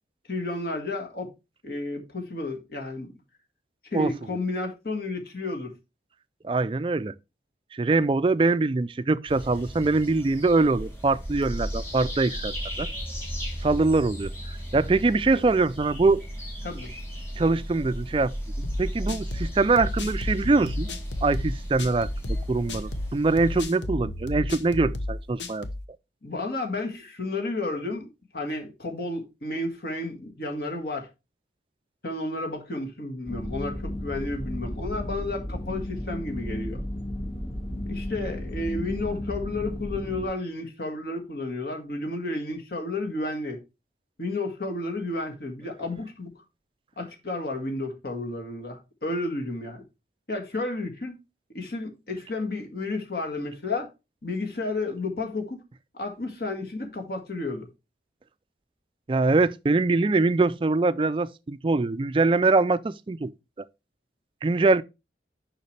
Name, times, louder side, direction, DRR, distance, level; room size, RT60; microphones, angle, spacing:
voice 1, 0.3-1.3 1.6-3.1 3.9-5.7 15.3-15.5 16.6-16.9 26.2-31.1 32.0-36.8 37.9-43.6 44.2-46.3 47.0-49.8 50.3-51.2 51.5-53.9 54.2-55.6 55.9-57.7, left 2 dB, 55° left, 1.7 m, -32 dB
voice 2, 6.4-7.1 7.7-12.9 13.6-14.3 14.7-16.2 17.4-20.9 21.2-25.7 59.1-63.3 64.4-64.8, right 3 dB, 30° right, 0.3 m, -23 dB
sound 1, 9.3-23.6, equal, 15° left, 2.7 m, -35 dB
sound 2, 18.6-25.8, left 1 dB, 80° left, 1.0 m, -32 dB
sound 3, 33.3-40.3, left 1 dB, 30° left, 1.6 m, -33 dB
6.7 x 5.8 x 3.2 m
head